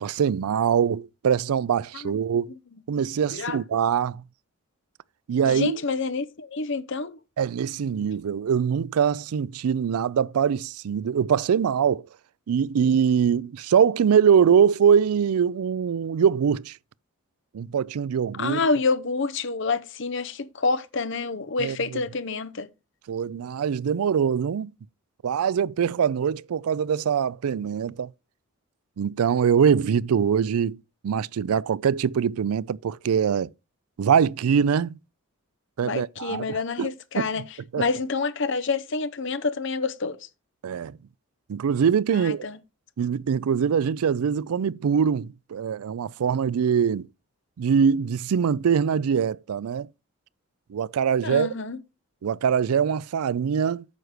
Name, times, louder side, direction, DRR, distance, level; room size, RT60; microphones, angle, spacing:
voice 1, 0.0-2.5 2.9-4.2 5.3-5.8 7.4-12.1 12.5-16.8 17.5-18.6 21.6-21.8 23.1-24.7 25.2-28.1 29.0-30.8 31.0-33.5 34.0-35.0 35.8-36.9 37.2-37.3 37.7-37.8 40.6-41.0 41.5-42.4 43.0-47.1 47.6-49.9 50.7-51.5 52.2-53.8, right 7 dB, 85° right, 0.4 m, -23 dB
voice 2, 5.5-7.2 18.4-22.7 35.8-37.4 37.8-40.2 42.1-42.6 51.2-51.8, left 4 dB, 55° left, 0.8 m, -28 dB
9.2 x 6.5 x 4.9 m
head